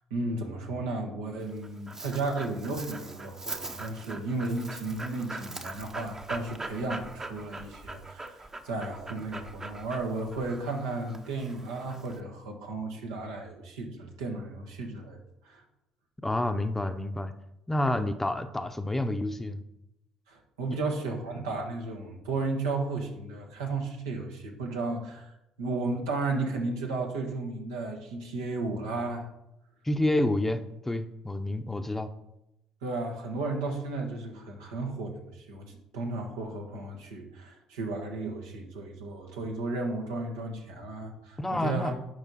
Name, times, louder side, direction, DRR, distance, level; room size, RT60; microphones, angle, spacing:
voice 1, 0.1-15.6 20.3-29.3 32.8-41.9, right 3 dB, 80° right, 2 dB, 1.4 m, -34 dB
Dog, 1.4-12.2, right 2 dB, 20° right, 0.9 m, -42 dB
voice 2, 16.2-17.3 17.7-19.6 20.7-20.8 29.8-32.1 41.4-41.9, left 1 dB, 10° left, 9 dB, 0.7 m, -29 dB
10.5 x 5.1 x 4.2 m, 0.87 s
hypercardioid pair, 55°, 2 cm